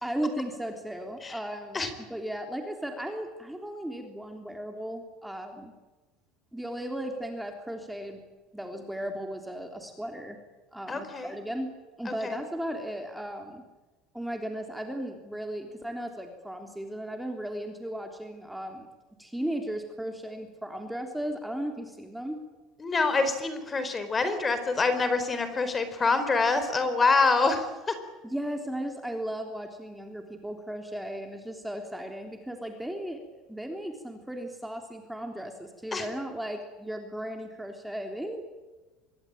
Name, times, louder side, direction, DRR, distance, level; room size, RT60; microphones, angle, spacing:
voice 1, 0.0-5.7 6.5-8.2 8.5-10.4 10.7-11.7 12.0-13.6 14.1-18.9 19.2-22.4 28.2-33.2 33.5-38.5, right 1 dB, 5° right, 4 dB, 3.4 m, -36 dB
voice 2, 10.9-11.3 12.1-12.4 22.8-27.9 35.9-36.1, left 3 dB, 20° left, 10 dB, 4.4 m, -26 dB
26.0 x 22.0 x 8.9 m, 1.2 s
supercardioid pair, 130°, 0 cm